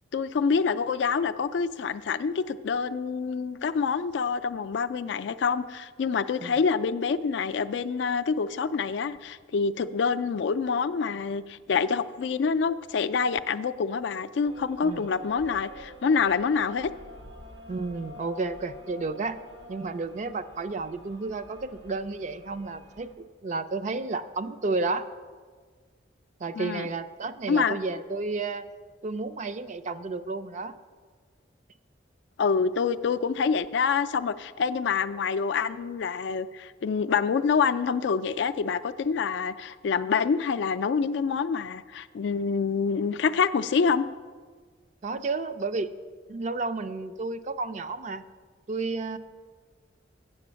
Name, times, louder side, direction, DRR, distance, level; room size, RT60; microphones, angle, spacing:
voice 1, 0.1-16.9 26.6-26.9 27.5-27.8 32.4-44.1, left 5 dB, 70° left, 14 dB, 0.3 m, -26 dB
sound 1, 14.4-23.1, left 1 dB, 75° right, 0.9 m, -47 dB
voice 2, 17.7-19.4 19.7-25.1 26.4-28.7 29.0-30.7 45.0-45.9 46.3-48.2 48.7-49.2, right 3 dB, 40° right, 12 dB, 0.4 m, -32 dB
7.8 x 7.5 x 6.2 m, 1.5 s
head